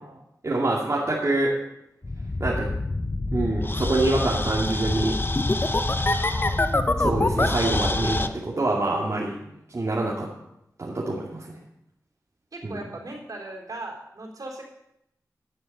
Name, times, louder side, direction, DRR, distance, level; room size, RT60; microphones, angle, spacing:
voice 1, 0.4-1.5 2.4-2.7 3.3-5.2 7.0-9.3 9.7-10.3 10.8-11.4 12.6-12.8, right 2 dB, 50° right, -4 dB, 2.3 m, -25 dB
sound 1, 2.0-8.3, left 2 dB, 35° left, 0.9 m, -25 dB
voice 2, 12.5-14.6, right 2 dB, 65° right, 0 dB, 3.7 m, -39 dB
11.0 x 10.0 x 5.4 m, 0.81 s
cardioid pair, 40°, 7 cm